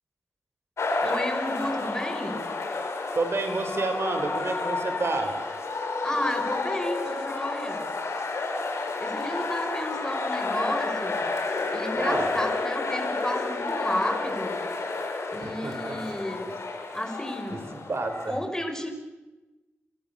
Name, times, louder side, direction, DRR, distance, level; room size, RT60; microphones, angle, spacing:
sound 1, 0.8-18.4, left 3 dB, 85° left, 4.5 m, -30 dB
voice 1, 1.0-2.4 6.0-7.9 9.0-11.3 11.7-14.6 15.3-16.5 16.9-17.7 18.3-18.9, left 1 dB, 15° left, 6 dB, 5.2 m, -32 dB
voice 2, 3.1-5.3 11.9-12.3 15.4-16.2 17.5-17.6 17.9-18.3, right 3 dB, 65° right, 7 dB, 4.4 m, -29 dB
28.5 x 21.0 x 6.9 m, 1.1 s
cardioid pair, 50°, 5 cm